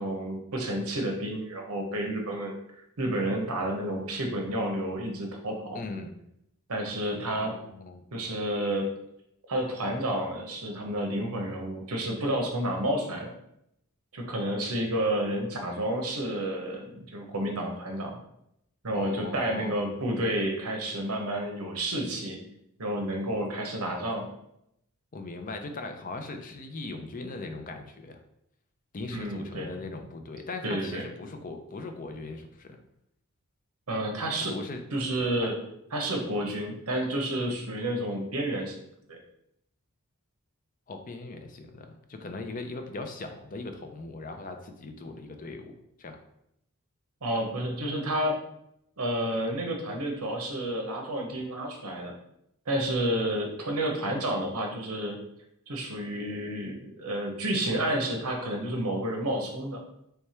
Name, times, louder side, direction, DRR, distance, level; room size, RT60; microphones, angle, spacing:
voice 1, 0.0-2.5 3.0-5.8 6.7-7.6 8.1-8.9 9.5-13.3 14.1-18.2 18.8-22.4 22.8-24.3 29.1-29.7 30.6-31.0 33.9-34.6 34.9-35.5 35.9-38.7 39.1-39.2 47.2-48.4 49.0-52.1 52.7-55.2 55.7-59.8, right 1 dB, 80° right, 2 dB, 0.9 m, -30 dB
voice 2, 5.7-6.1 7.3-8.0 18.9-19.8 25.1-28.2 28.9-32.8 34.5-34.8 35.4-35.5 40.9-46.2, left 3 dB, 35° left, 6 dB, 0.5 m, -39 dB
3.4 x 3.3 x 4.3 m, 0.78 s
head